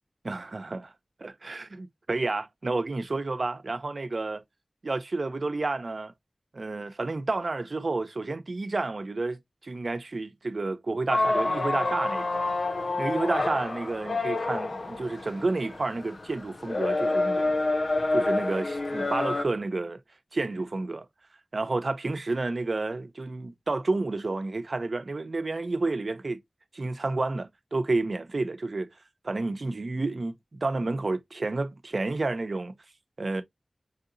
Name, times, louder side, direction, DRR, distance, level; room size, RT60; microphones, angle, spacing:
voice 1, 0.2-0.9 1.2-4.4 4.8-6.1 6.5-12.5 13.0-17.5 18.1-20.0 20.3-21.1 21.5-26.4 26.7-28.9 29.2-32.8 33.2-33.4, right 3 dB, 75° right, 0.7 m, -30 dB
sound 1, 11.1-19.5, left 2 dB, 75° left, 0.3 m, -28 dB
5.6 x 2.9 x 2.5 m
wide cardioid pair, 45°, 0 cm